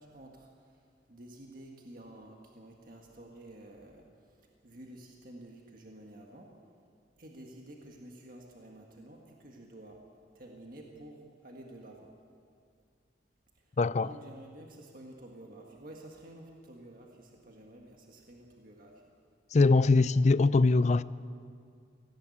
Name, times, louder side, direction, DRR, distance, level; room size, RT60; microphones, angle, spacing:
voice 1, 0.0-6.5 7.2-10.0 10.3-12.1 13.6-19.0, right 1 dB, 45° right, 1.8 m, -51 dB
voice 2, 13.8-14.1 19.5-21.0, left 3 dB, 35° left, 0.4 m, -22 dB
18.0 x 17.0 x 8.5 m
head